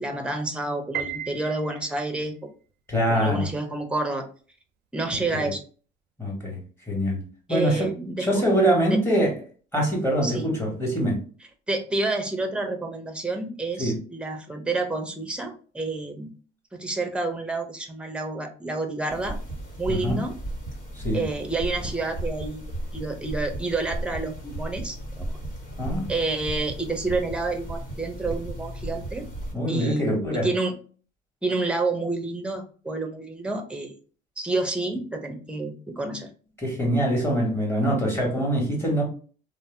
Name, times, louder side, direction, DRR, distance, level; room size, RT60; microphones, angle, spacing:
voice 1, 0.0-2.4 3.1-4.3 4.9-5.6 7.5-8.4 8.9-9.0 10.2-10.4 11.7-16.3 16.7-19.4 19.8-20.3 21.1-22.6 22.9-25.3 26.1-29.3 29.7-30.2 30.4-30.7 31.4-33.9 34.4-36.3, right 2 dB, 5° right, 0.6 m, -29 dB
Piano, 0.9-2.2, right 9 dB, 75° right, 0.4 m, -34 dB
voice 2, 2.9-3.5 5.3-5.5 6.2-6.6 6.9-7.2 7.5-7.9 8.2-9.4 9.7-11.2 13.8-14.0 19.9-20.2 20.9-21.2 25.8-26.1 29.5-30.5 36.6-39.0, equal, 15° left, 1.4 m, -24 dB
sound 1, 19.1-29.5, right 1 dB, 60° left, 1.4 m, -35 dB
2.6 x 2.1 x 3.3 m
cardioid pair, 110°, 17 cm